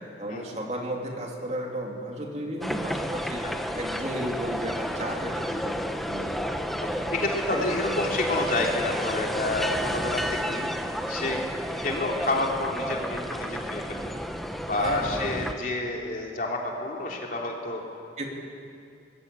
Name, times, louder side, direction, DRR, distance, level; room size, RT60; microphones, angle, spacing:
voice 1, 0.2-3.4 3.7-6.5 7.0-7.1 7.5-7.7 14.8-15.5 18.2-18.3, right 1 dB, 40° right, 0 dB, 3.2 m, -34 dB
sound 1, 2.6-15.5, equal, ahead, 1.0 m, -31 dB
voice 2, 6.7-10.7 11.1-11.4 11.8-14.1 14.7-17.8, left 2 dB, 50° left, 0 dB, 3.4 m, -29 dB
24.0 x 20.5 x 8.6 m, 2.4 s
head